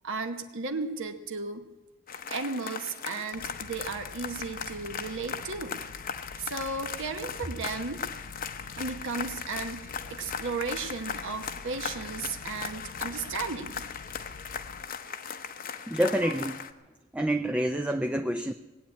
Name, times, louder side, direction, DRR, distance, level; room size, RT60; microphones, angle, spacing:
voice 1, 0.0-1.7 2.3-5.8 6.4-8.0 8.8-13.8, right 4 dB, 60° right, 6 dB, 1.0 m, -35 dB
sound 1, 2.1-16.7, left 7 dB, 45° left, 0.8 m, -38 dB
sound 2, 3.3-14.9, left 3 dB, 85° left, 0.7 m, -48 dB
voice 2, 15.9-16.7 17.1-18.5, right 1 dB, 5° right, 6 dB, 0.4 m, -27 dB
19.0 x 8.8 x 8.5 m, 1.2 s
head